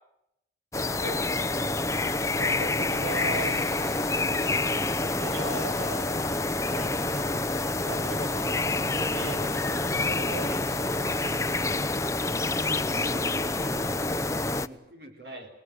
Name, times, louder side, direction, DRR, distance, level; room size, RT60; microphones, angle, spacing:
sound 1, 0.7-14.7, left 2 dB, 20° left, 0.9 m, -27 dB
voice 1, 2.4-3.5 5.2-6.1 6.6-7.2 7.9-8.6 8.9-10.9 15.2-15.5, right 2 dB, 80° right, 6 dB, 7.6 m, -38 dB
sound 2, 3.1-6.5 6.8-10.1, right 2 dB, 25° right, 5.9 m, -53 dB
voice 2, 12.5-15.5, right 1 dB, 60° right, 3 dB, 4.4 m, -47 dB
29.0 x 20.5 x 7.8 m, 0.82 s
head